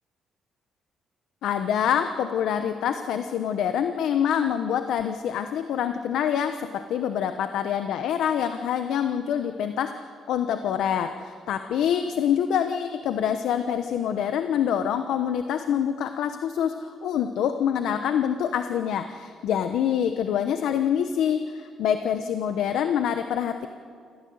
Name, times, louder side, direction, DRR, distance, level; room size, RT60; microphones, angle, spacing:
voice 1, 1.4-23.7, left 9 dB, 80° left, 8 dB, 1.0 m, -26 dB
26.5 x 16.0 x 7.9 m, 2.2 s
cardioid pair, 90°, 0 cm